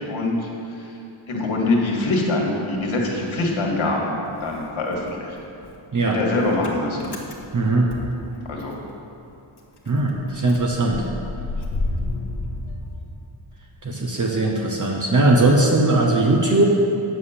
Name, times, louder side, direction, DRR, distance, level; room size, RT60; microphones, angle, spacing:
voice 1, 0.1-0.8 1.3-4.1 4.4-5.3 6.0-7.1 8.5-8.7 15.1-15.3, left 2 dB, 70° left, -1 dB, 1.9 m, -24 dB
Motor vehicle (road) / Engine starting, 2.7-4.0 4.3-8.9 9.2-9.3 9.6-13.7, left 2 dB, 50° left, 1.3 m, -32 dB
voice 2, 7.5-7.9 9.9-11.0 13.8-16.6, right 2 dB, 40° right, -1 dB, 0.9 m, -19 dB
9.1 x 6.5 x 7.2 m, 2.7 s
wide cardioid pair, 175°, 49 cm